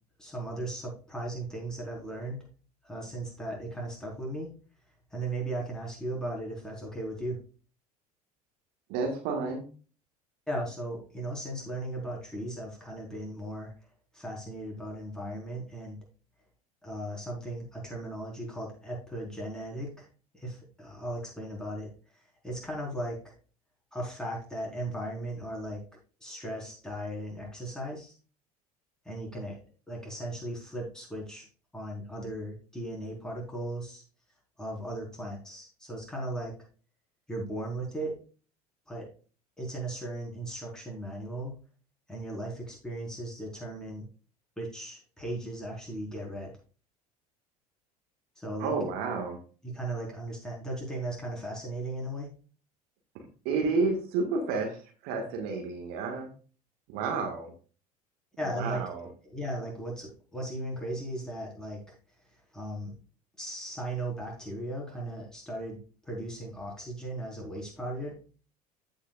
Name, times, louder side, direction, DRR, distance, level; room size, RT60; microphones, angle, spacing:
voice 1, 0.2-2.4 2.8-4.5 5.1-7.4 10.5-13.7 14.1-16.0 16.8-20.1 20.3-23.3 23.9-25.8 26.2-28.2 29.0-29.6 29.9-31.5 31.7-34.0 34.6-36.5 37.3-38.2 38.9-39.1 39.6-41.5 42.1-44.1 44.6-46.5 48.4-48.7 49.6-52.3 58.4-62.0 62.5-62.9 63.4-68.2, right 1 dB, 5° left, -2 dB, 4.3 m, -37 dB
voice 2, 8.9-9.7 48.6-49.4 53.5-56.3 56.9-57.5 58.5-59.1, right 4 dB, 55° right, 3 dB, 1.7 m, -30 dB
14.5 x 5.6 x 2.4 m, 0.37 s
figure-of-eight pair, 70°, 19 cm